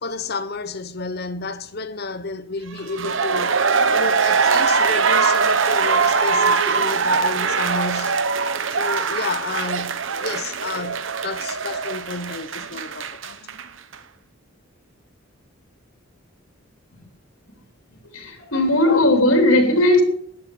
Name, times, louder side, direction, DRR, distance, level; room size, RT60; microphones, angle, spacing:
voice 1, 0.0-3.6 3.9-8.2 8.7-13.4 18.9-19.0, left 3 dB, 50° left, 0.9 m, -30 dB
sound 1, 2.8-13.6 13.9-14.0, right 5 dB, 65° right, 1.0 m, -21 dB
voice 2, 18.1-20.0, left 1 dB, 80° left, 3.3 m, -17 dB
14.5 x 10.0 x 7.1 m
head